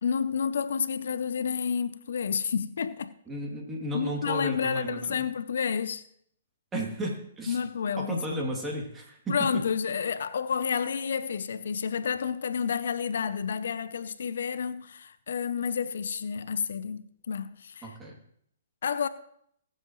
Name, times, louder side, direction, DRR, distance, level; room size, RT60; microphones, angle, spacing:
voice 1, 0.0-3.1 3.9-6.1 7.5-8.2 9.3-18.0 18.8-19.1, left 6 dB, 70° left, 0.6 m, -30 dB
voice 2, 3.3-5.2 6.7-7.6 8.0-9.3 17.8-18.2, right 1 dB, 15° right, 2.7 m, -34 dB
20.5 x 7.7 x 3.1 m
hypercardioid pair, 130°, 0 cm